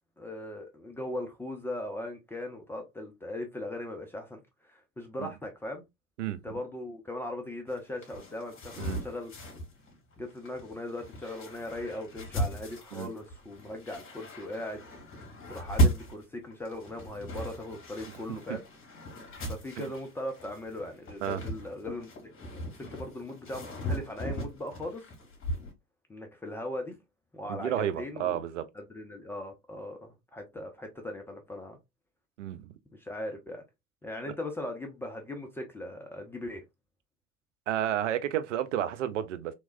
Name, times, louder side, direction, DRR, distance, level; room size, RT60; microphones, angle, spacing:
voice 1, 0.2-5.8 6.2-9.3 10.2-14.8 15.5-18.6 19.5-22.1 22.4-22.5 22.9-25.1 26.1-27.0 27.3-28.4 28.7-31.8 32.9-33.6 34.0-36.6, left 1 dB, 5° left, 0.4 m, -39 dB
voice 2, 6.2-6.6 8.8-9.0 12.9-13.1 18.5-18.6 19.8-19.9 21.2-21.4 27.5-28.7 32.4-32.7 37.7-39.5, right 11 dB, 60° right, 0.6 m, -31 dB
sound 1, 7.7-25.7, right 1 dB, 30° left, 2.0 m, -36 dB
3.5 x 3.1 x 2.5 m
figure-of-eight pair, 85°, 41 cm